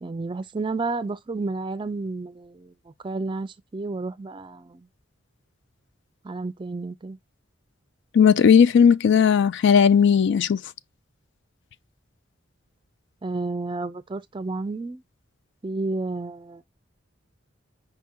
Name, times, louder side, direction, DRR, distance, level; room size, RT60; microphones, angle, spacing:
voice 1, 0.0-2.7 3.0-4.9 6.2-7.2 13.2-15.0 15.6-16.6, right 3 dB, 25° right, 0.4 m, -31 dB
voice 2, 8.1-10.6, left 7 dB, 65° left, 0.3 m, -16 dB
5.3 x 2.7 x 3.5 m
head